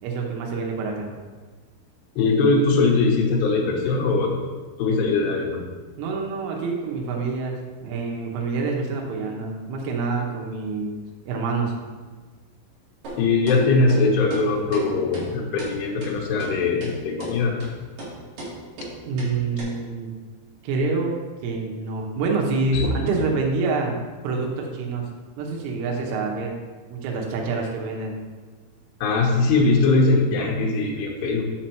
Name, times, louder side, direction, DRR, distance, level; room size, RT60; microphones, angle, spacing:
voice 1, 0.0-1.1 6.0-11.0 11.3-11.7 19.1-20.2 20.6-21.1 21.4-24.0 24.2-25.1 25.4-26.6 26.9-28.2, right 4 dB, 80° right, 0 dB, 3.6 m, -26 dB
voice 2, 2.2-4.4 4.8-5.7 13.2-17.6 22.7-22.9 29.0-31.4, left 3 dB, 70° left, -1 dB, 2.8 m, -21 dB
sound 1, 13.0-13.2 13.5-13.6 13.9-14.0 14.3-14.4 14.7-14.8 15.1-15.3 15.6-15.7 16.0-16.1 16.4-16.5 16.8-16.9 17.2-17.3 17.6-17.7 18.0-18.1 18.4-18.5 18.8-18.9 19.2-19.3 19.6-19.7, right 2 dB, 55° right, 3.1 m, -35 dB
7.6 x 5.9 x 4.5 m, 1.4 s
omnidirectional pair, 5.7 m